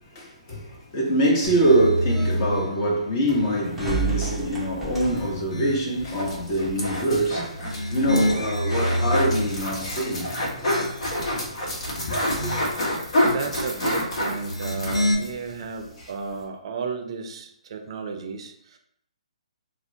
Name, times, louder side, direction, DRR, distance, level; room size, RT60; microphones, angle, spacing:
voice 1, 0.0-10.8 11.3-12.5, right 1 dB, 35° left, 1.0 m, -25 dB
sound 1, 1.4-2.7 3.3-4.4 4.9-6.0 7.5-9.6 10.1-11.3 11.8-12.9 14.4-15.1, equal, 80° left, 0.9 m, -28 dB
sound 2, 3.6-16.5, right 5 dB, 5° right, 0.6 m, -38 dB
sound 3, 6.0-15.3 15.7-15.8 16.0-16.1, left 1 dB, 60° left, 1.0 m, -28 dB
voice 2, 13.2-18.8, right 5 dB, 55° right, 0.5 m, -33 dB
4.2 x 2.1 x 2.7 m
figure-of-eight pair, 135°, 4 cm